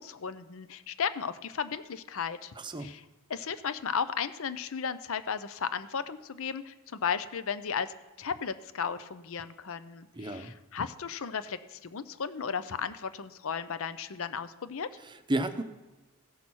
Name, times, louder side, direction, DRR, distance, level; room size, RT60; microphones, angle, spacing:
voice 1, 0.0-2.5 2.8-3.0 3.3-14.9, left 6 dB, 65° left, 13 dB, 0.6 m, -35 dB
voice 2, 2.6-2.9 10.2-10.5 15.1-15.6, right 1 dB, 20° right, 9 dB, 0.7 m, -32 dB
16.0 x 5.8 x 6.2 m, 1.2 s
head